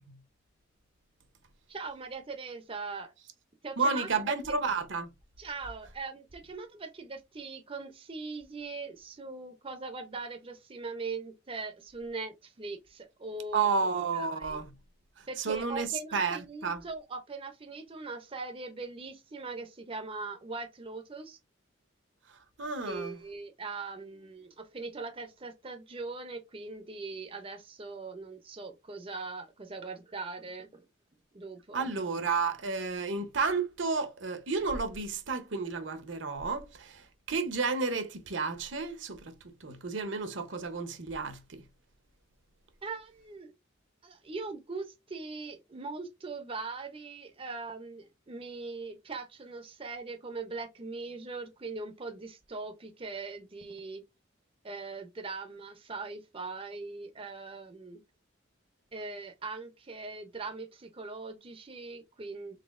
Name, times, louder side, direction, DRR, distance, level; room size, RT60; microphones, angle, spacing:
voice 1, 1.7-3.1 3.6-4.1 4.5-4.6 5.4-13.7 14.1-14.6 15.3-21.4 22.8-30.9 31.3-31.9 34.0-34.1 42.8-43.5 44.0-54.0 54.6-58.0 58.9-62.6, right 3 dB, 30° right, 0.6 m, -41 dB
voice 2, 3.8-5.1 13.5-14.7 15.4-16.8 22.6-23.1 31.7-37.0 37.3-39.3 39.6-41.6, right 4 dB, 65° right, 0.8 m, -31 dB
4.1 x 3.8 x 2.4 m
head